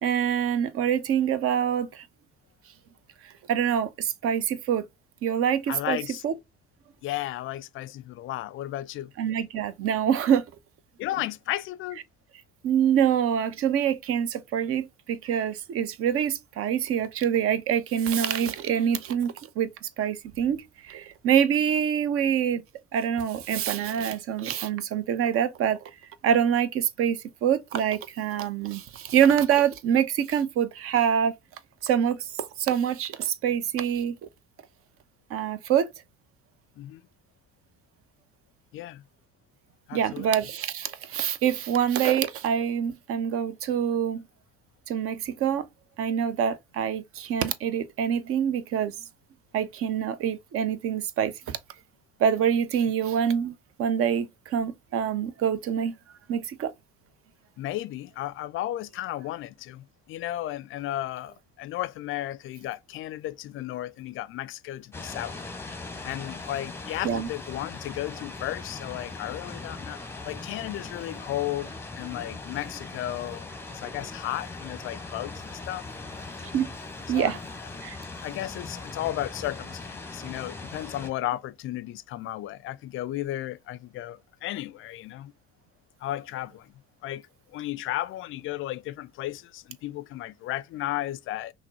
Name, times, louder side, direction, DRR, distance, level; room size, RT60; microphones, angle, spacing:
voice 1, 0.0-2.0 3.2-4.9 5.2-6.0 6.2-6.3 9.2-10.4 12.6-22.6 22.9-25.8 26.2-31.3 31.8-34.2 35.3-35.9 39.9-44.2 44.9-45.7 46.0-48.9 49.5-51.6 52.2-55.9 56.3-56.7 67.0-67.3 76.5-76.7 77.1-77.4 77.8-78.0, right 8 dB, 45° right, 0.6 m, -25 dB
voice 2, 5.7-6.2 7.0-9.1 11.0-12.0 36.8-37.1 38.7-39.0 39.9-40.3 57.6-65.3 66.0-75.8 76.4-76.5 77.1-77.4 78.2-85.3 86.0-86.7 87.0-87.3 87.5-91.5, left 14 dB, 40° left, 0.5 m, -34 dB
sound 1, 64.9-81.1, left 3 dB, 5° left, 0.8 m, -40 dB
5.8 x 2.1 x 2.7 m
figure-of-eight pair, 50°, 32 cm